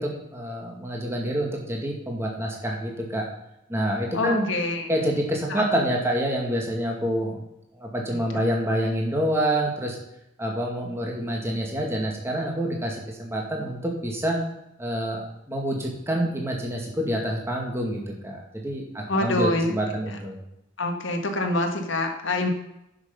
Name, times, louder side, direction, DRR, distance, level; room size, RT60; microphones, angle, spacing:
voice 1, 0.0-3.2 3.7-4.5 4.9-7.4 7.7-10.0 10.4-14.4 14.8-20.4, right 1 dB, 10° right, 0 dB, 2.1 m, -27 dB
voice 2, 4.1-4.9 5.2-5.6 8.1-8.4 19.1-19.7 20.8-22.5, left 2 dB, 65° left, 4 dB, 1.7 m, -26 dB
10.5 x 6.6 x 5.4 m, 0.86 s
head